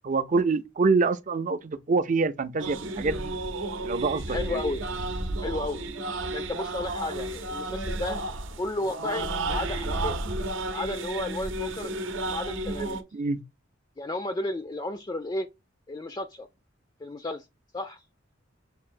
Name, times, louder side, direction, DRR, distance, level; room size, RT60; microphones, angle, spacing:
voice 1, 0.0-3.3 3.8-4.6 13.1-13.4, right 4 dB, 40° right, 0.5 m, -26 dB
sound 1, 2.6-13.0, right 2 dB, 80° right, 0.7 m, -32 dB
voice 2, 4.3-4.8 5.4-5.8 6.3-8.2 8.6-10.2 10.7-11.9 12.2-13.0 14.0-15.5 15.9-16.5 17.0-17.4 17.7-18.0, left 2 dB, 20° left, 0.4 m, -33 dB
6.6 x 2.6 x 2.5 m
head